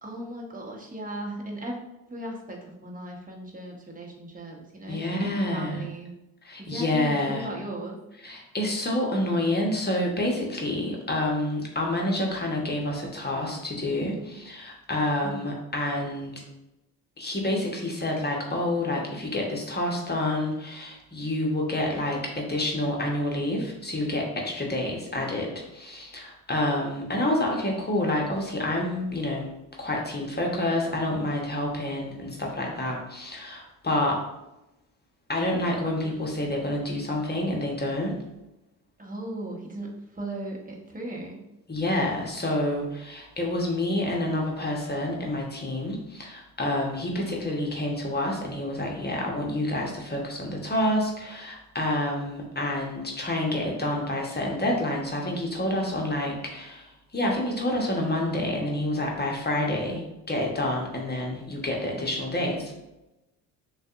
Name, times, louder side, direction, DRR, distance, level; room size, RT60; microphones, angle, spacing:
voice 1, 0.0-1.8 2.1-6.1 6.6-8.0 15.2-15.5 39.0-41.4, right 1 dB, 20° right, -1 dB, 1.1 m, -37 dB
voice 2, 4.9-5.8 6.4-7.5 8.2-16.3 17.2-29.5 29.8-34.2 35.3-38.2 41.7-56.9 57.1-62.7, left 1 dB, 20° left, -1 dB, 1.1 m, -28 dB
6.3 x 2.4 x 2.5 m, 0.94 s
hypercardioid pair, 55°, 45 cm